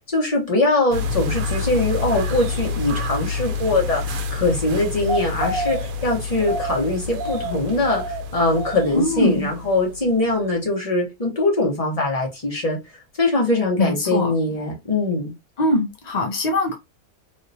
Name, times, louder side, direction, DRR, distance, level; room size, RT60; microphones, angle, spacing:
voice 1, 0.1-12.8 13.2-15.3, left 2 dB, 25° left, 1.2 m, -22 dB
sound 1, 0.9-10.2 10.4-10.5, left 2 dB, 70° right, 1.1 m, -27 dB
voice 2, 8.9-9.5 13.8-14.3 15.6-16.8, left 1 dB, 65° left, 0.4 m, -21 dB
3.2 x 2.8 x 2.7 m
omnidirectional pair, 1.6 m